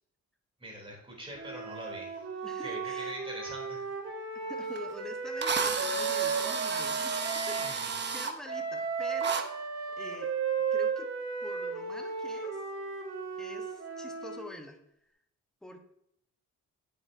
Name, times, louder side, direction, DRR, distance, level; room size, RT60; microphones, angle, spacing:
voice 1, 0.6-2.1 2.6-3.8 7.4-8.1, right 1 dB, 20° right, -2 dB, 3.3 m, -43 dB
Wind instrument woodwind instrument, 1.3-7.7 8.4-14.5, right 5 dB, 55° right, 2.6 m, -35 dB
voice 2, 2.4-3.2 4.5-10.3 10.7-11.1 11.4-12.6 13.4-14.8 15.6-15.8, left 1 dB, ahead, 3 dB, 1.1 m, -46 dB
Drill, 4.8-4.9 5.4-8.3 9.2-9.4, right 5 dB, 35° right, 0.8 m, -32 dB
8.9 x 7.2 x 2.7 m, 0.75 s
cardioid pair, 90°, 30 cm